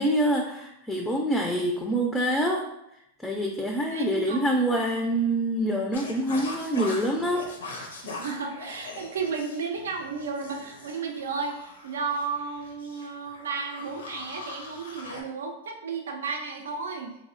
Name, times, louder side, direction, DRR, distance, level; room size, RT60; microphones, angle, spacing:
voice 1, 0.0-2.7 3.2-7.4, right 1 dB, 10° left, 1 dB, 0.3 m, -26 dB
voice 2, 3.9-4.5 8.0-17.2, right 5 dB, 80° right, 3 dB, 0.4 m, -33 dB
sound 1, 5.9-15.2, left 3 dB, 85° left, 0.5 m, -41 dB
3.2 x 2.0 x 2.4 m, 0.82 s
hypercardioid pair, 110°, 0 cm